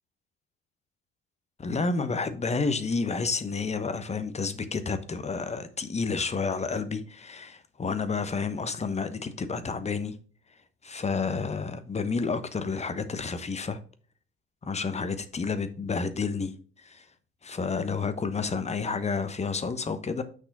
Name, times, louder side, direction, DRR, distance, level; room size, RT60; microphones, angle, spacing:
voice 1, 1.6-10.2 10.8-13.8 14.6-17.0 17.4-20.2, left 4 dB, 20° left, 1.1 m, -30 dB
6.4 x 6.0 x 4.1 m
hypercardioid pair, 65°, 29 cm